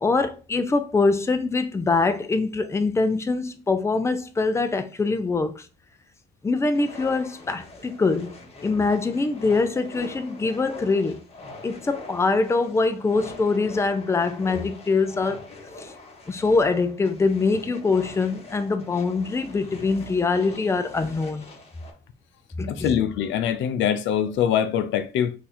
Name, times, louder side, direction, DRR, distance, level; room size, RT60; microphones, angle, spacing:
voice 1, 0.0-5.7 6.4-8.4 8.6-11.2 11.6-15.4 15.8-15.9 16.3-21.4 22.6-23.0, left 3 dB, 15° left, 0.4 m, -23 dB
sound 1, 6.7-21.9, left 2 dB, 35° left, 1.0 m, -43 dB
voice 2, 22.7-25.3, left 9 dB, 75° left, 0.4 m, -23 dB
2.7 x 2.3 x 4.1 m
cardioid pair, 80°, 19 cm